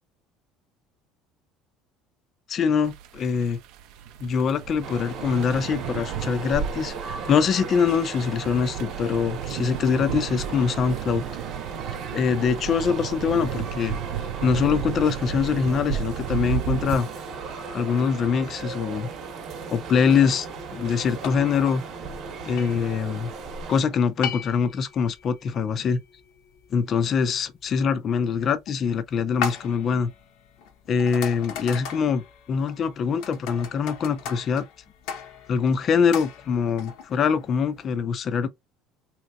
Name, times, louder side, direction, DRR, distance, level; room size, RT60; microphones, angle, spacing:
voice 1, 2.5-3.6 4.2-11.2 12.1-13.9 14.4-17.1 17.7-19.1 19.7-20.5 20.7-21.8 22.5-23.3 23.7-26.0 26.7-30.1 30.9-32.2 32.5-34.7 35.5-38.5, left 6 dB, 30° left, 0.3 m, -23 dB
sound 1, 2.8-17.0, right 10 dB, 65° right, 0.4 m, -34 dB
sound 2, 4.8-23.8, right 5 dB, 45° right, 0.9 m, -36 dB
sound 3, 18.4-37.8, left 7 dB, 65° left, 0.7 m, -39 dB
3.6 x 2.8 x 2.2 m
cardioid pair, 175°, 0 cm